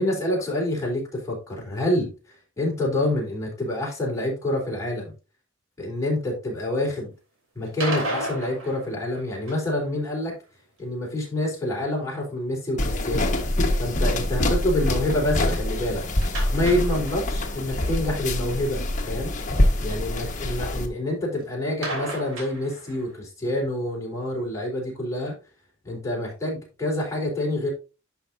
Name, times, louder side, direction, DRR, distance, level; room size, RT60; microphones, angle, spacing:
voice 1, 0.0-2.1 2.6-5.1 5.8-7.1 7.6-10.4 10.8-13.3 13.8-16.0 16.5-18.8 19.1-19.3 19.8-25.4 25.8-27.7, left 1 dB, 15° left, -3 dB, 4.0 m, -27 dB
sound 1, 7.7-9.8 16.2-17.5 17.8-17.9 18.2-18.3 21.8-23.2, right 1 dB, 75° right, 3.3 m, -33 dB
sound 2, 12.8-20.9, left 1 dB, 40° left, 1.3 m, -25 dB
11.0 x 5.7 x 2.7 m, 0.31 s
head